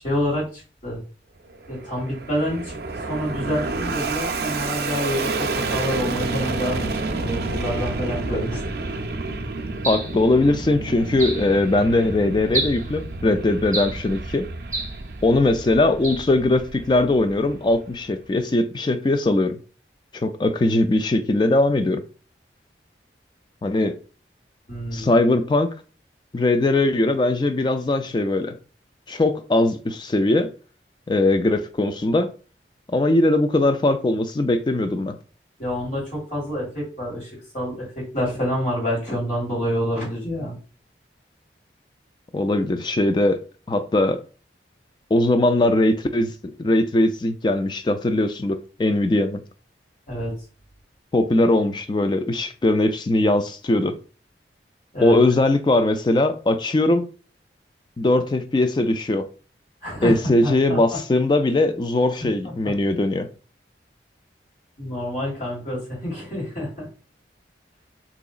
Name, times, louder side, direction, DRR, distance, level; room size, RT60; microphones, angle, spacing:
voice 1, 0.0-1.0 1.7-2.8 3.1-8.6 24.7-25.1 35.6-40.6 50.1-50.3 54.9-55.2 59.8-60.8 62.4-62.5 64.8-66.9, equal, 45° left, 1.7 m, -27 dB
Fixed-wing aircraft airplane, 1.5-18.1, right 3 dB, 60° right, 0.5 m, -30 dB
sound 1, 9.8-10.2 11.2-11.5 12.5-12.9 13.7-14.0 14.7-15.0 16.0-16.3, right 3 dB, 20° right, 0.7 m, -28 dB
voice 2, 9.9-14.5 15.2-19.6 20.1-22.0 23.6-24.0 24.9-25.7 26.3-28.6 29.1-30.5 31.1-32.3 32.9-35.2 42.3-43.4 43.7-44.2 45.1-46.3 46.6-49.4 51.1-53.9 55.0-57.1 58.0-59.3 60.0-63.3, left 2 dB, 25° left, 0.3 m, -20 dB
3.8 x 2.9 x 2.3 m
head